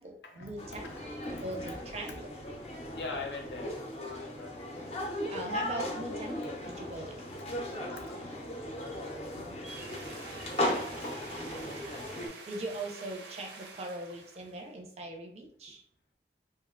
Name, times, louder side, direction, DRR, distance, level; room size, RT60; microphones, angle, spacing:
voice 1, 0.0-2.3 5.3-7.4 11.3-11.8 12.2-15.8, right 2 dB, 35° right, 2 dB, 0.5 m, -41 dB
sound 1, 0.6-12.3, left 1 dB, 35° left, 0.5 m, -37 dB
voice 2, 2.9-4.8 7.5-8.2 9.1-11.1, left 3 dB, 75° left, 2 dB, 0.6 m, -44 dB
sound 2, 9.6-14.7, right 4 dB, 80° right, 0.7 m, -48 dB
2.8 x 2.1 x 3.6 m, 0.68 s
head